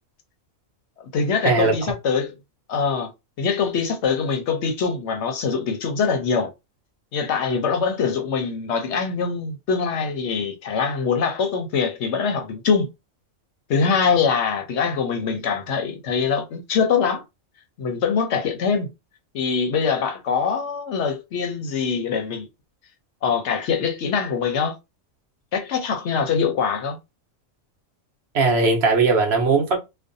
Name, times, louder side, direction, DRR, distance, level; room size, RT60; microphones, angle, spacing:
voice 1, 1.1-2.3 2.7-3.1 3.4-6.5 7.1-12.9 13.7-17.2 17.8-18.9 19.3-22.5 23.2-24.7 25.5-27.0, left 5 dB, 65° left, 0.8 m, -23 dB
voice 2, 28.3-29.8, right 4 dB, 60° right, 0.8 m, -18 dB
2.5 x 2.2 x 2.5 m
omnidirectional pair, 1.4 m